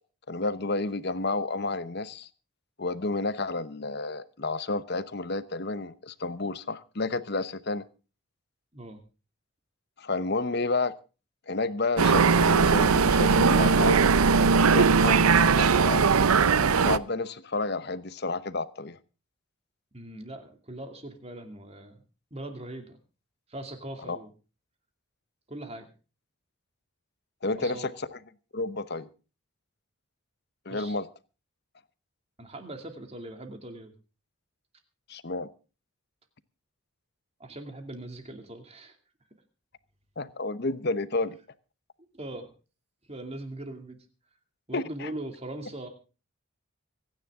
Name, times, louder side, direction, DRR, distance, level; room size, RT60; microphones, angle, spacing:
voice 1, 0.3-2.3 2.8-7.8 10.0-10.9 11.5-14.0 14.7-16.1 16.8-19.0 24.0-24.2 27.4-28.2 28.5-29.1 30.7-31.1 35.1-35.5 40.2-41.4 44.7-45.1, left 3 dB, 50° left, 14 dB, 0.9 m, -30 dB
sound 1, 12.0-17.0, right 5 dB, 85° right, 0.7 m, -20 dB
voice 2, 19.9-22.0 22.3-23.0 23.5-24.3 25.5-25.9 27.6-27.9 30.7-31.0 32.4-33.9 37.4-39.0 42.1-42.5 43.1-44.0 44.7-45.9, right 1 dB, 30° right, 6 dB, 2.6 m, -40 dB
25.0 x 10.0 x 3.7 m, 0.35 s
head